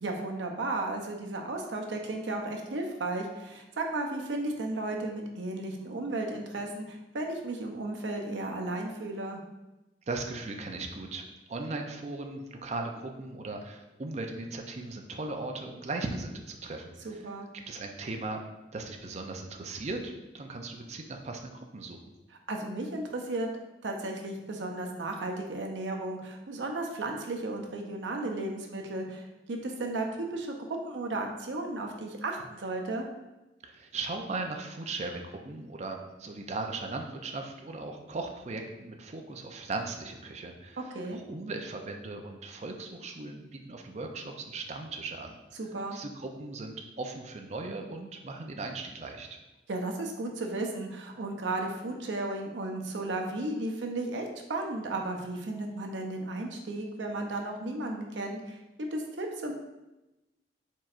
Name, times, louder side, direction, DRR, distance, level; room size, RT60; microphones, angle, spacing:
voice 1, 0.0-9.4 17.0-17.5 22.5-23.5 23.8-30.6 30.9-33.1 40.9-41.2 45.6-46.0 49.7-58.6 58.9-59.5, right 2 dB, 90° right, 2 dB, 0.7 m, -34 dB
voice 2, 10.1-11.2 11.5-17.3 17.5-18.4 18.7-22.0 33.6-45.4 45.9-49.4, right 3 dB, 40° right, 3 dB, 0.5 m, -38 dB
4.5 x 4.2 x 2.5 m, 0.99 s
head